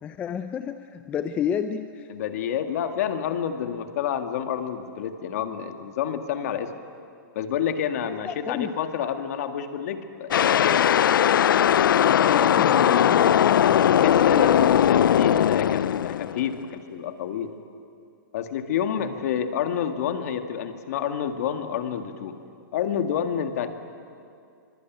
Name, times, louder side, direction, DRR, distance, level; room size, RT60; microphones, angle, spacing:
voice 1, 0.0-2.1 8.1-8.7 12.1-14.7 19.0-19.2, left 8 dB, 10° left, 9 dB, 0.5 m, -31 dB
voice 2, 2.1-6.7 7.4-10.9 13.8-17.5 18.3-22.4 22.7-23.7, left 8 dB, 45° left, 7 dB, 1.9 m, -28 dB
sound 1, 10.3-16.6, left 9 dB, 75° left, 0.6 m, -19 dB
24.5 x 22.0 x 9.4 m, 2.5 s
hypercardioid pair, 165°, 11 cm